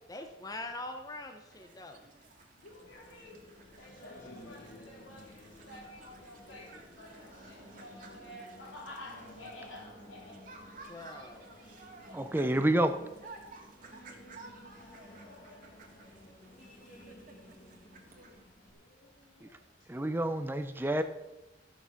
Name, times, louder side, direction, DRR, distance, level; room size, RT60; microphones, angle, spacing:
voice 1, 0.1-2.0 10.9-11.5, left 2 dB, 20° left, 6 dB, 0.8 m, -43 dB
sound 1, 1.4-18.4, right 3 dB, 45° right, 1.9 m, -55 dB
voice 2, 2.6-3.5 3.8-10.5 12.1-12.2 14.9-15.8 18.6-19.7, left 1 dB, 90° left, -1 dB, 3.5 m, -51 dB
Singing, 2.7-18.7, left 1 dB, 45° left, 2.1 m, -54 dB
voice 3, 12.1-13.0 19.4-19.5 19.9-21.0, right 1 dB, 10° right, 9 dB, 0.5 m, -29 dB
13.5 x 7.2 x 5.7 m, 1.0 s
head